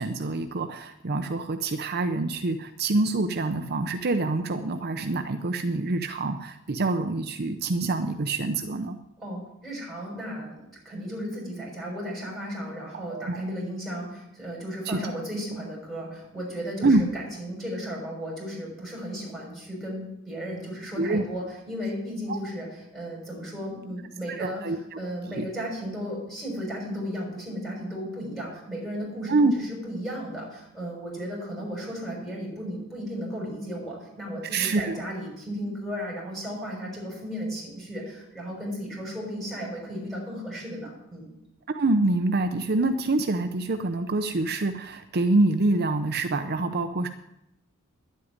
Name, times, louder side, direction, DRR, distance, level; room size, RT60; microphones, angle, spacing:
voice 1, 0.0-9.0 12.9-13.4 14.9-15.0 16.8-17.1 21.0-21.2 22.3-22.4 24.3-25.0 25.4-25.5 29.3-29.5 34.5-35.0 41.7-47.1, right 2 dB, 50° right, 7 dB, 0.7 m, -26 dB
voice 2, 9.2-22.7 22.9-24.6 25.0-29.3 29.7-41.3, equal, ahead, -4 dB, 6.3 m, -35 dB
11.0 x 8.3 x 9.6 m, 0.84 s
head